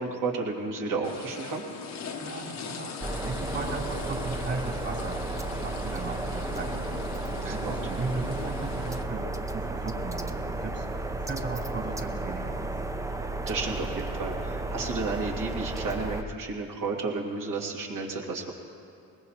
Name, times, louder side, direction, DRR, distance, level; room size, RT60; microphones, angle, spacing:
voice 1, 0.0-1.6 7.4-7.8 13.5-18.5, right 3 dB, 70° right, -1 dB, 2.4 m, -32 dB
sound 1, 1.0-9.0, left 6 dB, 50° left, 1.0 m, -40 dB
voice 2, 2.1-6.9 7.4-10.9 11.1-12.8, right 3 dB, 45° right, -1 dB, 3.3 m, -37 dB
sound 2, 3.0-16.2, right 2 dB, 10° right, 0.6 m, -33 dB
21.0 x 19.5 x 2.9 m, 2.5 s
cardioid pair, 85°, 34 cm